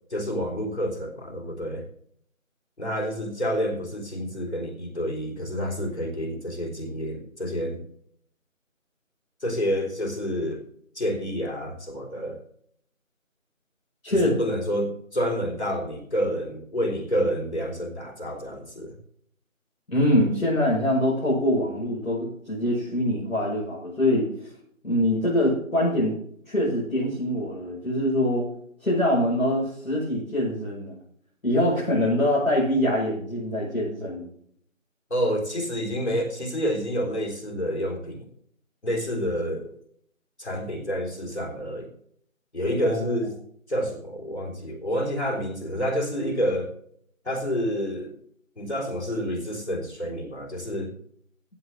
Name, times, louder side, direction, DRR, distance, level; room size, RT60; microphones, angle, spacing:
voice 1, 0.1-1.9 2.8-7.8 9.4-10.6 11.0-12.4 14.1-18.9 35.1-38.3 38.8-39.7 40.4-41.9 42.5-43.3 43.7-46.7 47.2-48.1 48.6-50.9, equal, 55° left, 2 dB, 3.7 m, -28 dB
voice 2, 19.9-24.3 24.8-26.2 26.5-28.5 28.8-31.0 31.4-34.3 42.9-43.0, left 1 dB, 80° left, -7 dB, 6.1 m, -24 dB
15.5 x 8.5 x 3.8 m, 0.64 s
figure-of-eight pair, 180°, 40 cm